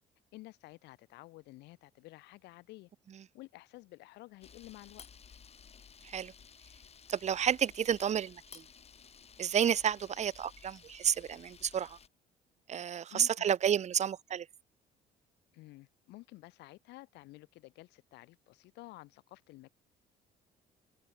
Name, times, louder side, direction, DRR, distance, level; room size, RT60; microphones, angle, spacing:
voice 1, 0.3-2.9 3.3-5.1 13.1-13.6 15.5-19.7, left 19 dB, 90° left, 5.4 m, -52 dB
Camera, 4.4-12.1, left 6 dB, 40° left, 6.1 m, -56 dB
voice 2, 7.1-8.6 9.4-12.0 12.7-14.5, right 9 dB, 40° right, 1.1 m, -31 dB
open air
cardioid pair, 110°, 17 cm